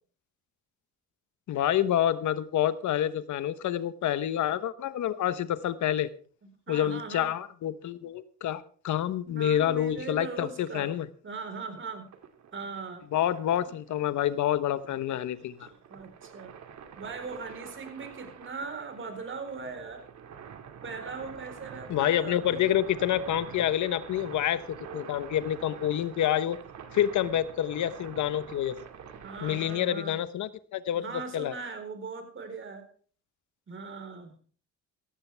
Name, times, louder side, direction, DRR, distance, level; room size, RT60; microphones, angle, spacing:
voice 1, 1.5-6.1 6.7-11.1 13.1-15.7 21.9-24.6 24.9-26.6 26.9-28.8 29.4-31.5, left 11 dB, 75° left, 14 dB, 1.1 m, -28 dB
voice 2, 6.4-7.3 9.3-12.1 12.5-13.0 15.9-16.5 17.0-20.0 20.8-22.6 29.2-30.2 30.9-32.9 33.7-34.3, right 4 dB, 40° right, 7 dB, 4.3 m, -40 dB
sound 1, 11.5-29.8, right 7 dB, 65° right, 2.3 m, -47 dB
17.0 x 15.5 x 3.5 m, 0.43 s
cardioid pair, 90°, 30 cm